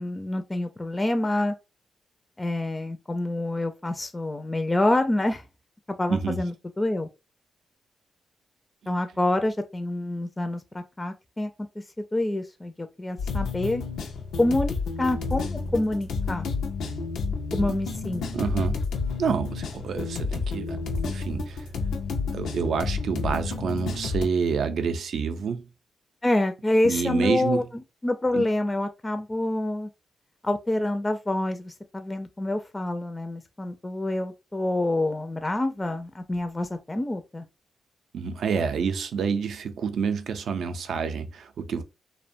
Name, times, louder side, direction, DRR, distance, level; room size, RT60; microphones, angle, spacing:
voice 1, 0.0-1.5 2.4-5.4 5.9-7.1 8.9-11.5 12.1-13.8 14.4-16.5 17.5-18.3 26.2-27.6 28.0-29.9 30.4-37.4, left 1 dB, 25° left, 0.4 m, -27 dB
sound 1, 13.2-24.3, left 4 dB, 90° left, 0.4 m, -30 dB
voice 2, 18.3-18.8 19.2-21.7 22.3-25.7 26.8-27.7 28.3-28.5 38.1-41.8, right 6 dB, 75° right, 0.3 m, -28 dB
2.6 x 2.1 x 2.5 m
supercardioid pair, 55°, 0 cm